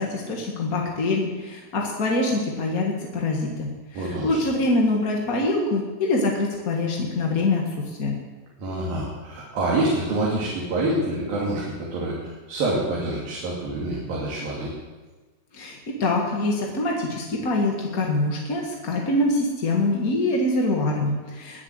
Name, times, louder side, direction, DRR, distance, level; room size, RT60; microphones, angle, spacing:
voice 1, 0.0-8.2 15.5-21.6, left 2 dB, 40° left, -1 dB, 1.4 m, -24 dB
voice 2, 3.9-4.4 8.6-14.7, right 2 dB, 85° right, -5 dB, 4.3 m, -26 dB
21.0 x 7.3 x 7.8 m, 1.3 s
omnidirectional pair, 4.0 m